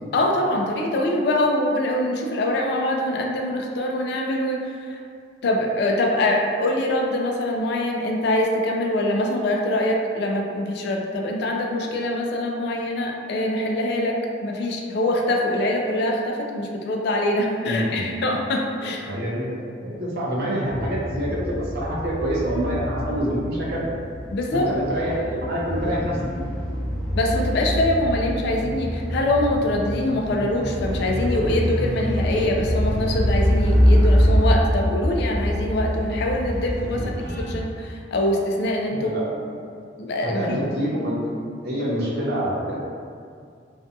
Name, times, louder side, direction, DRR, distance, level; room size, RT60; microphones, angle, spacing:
voice 1, 0.1-5.0 5.4-14.1 14.4-19.1 24.3-24.7 27.1-37.1 37.5-39.1 40.0-40.6, left 1 dB, 60° left, 0 dB, 0.3 m, -24 dB
voice 2, 17.6-18.1 19.1-23.9 24.5-26.2 36.9-37.5 38.9-39.3 40.2-41.4 41.6-42.7, equal, 55° right, -5 dB, 0.6 m, -26 dB
sound 1, 20.7-37.5, equal, 5° left, 0.5 m, -24 dB
2.5 x 2.2 x 2.5 m, 2.3 s
head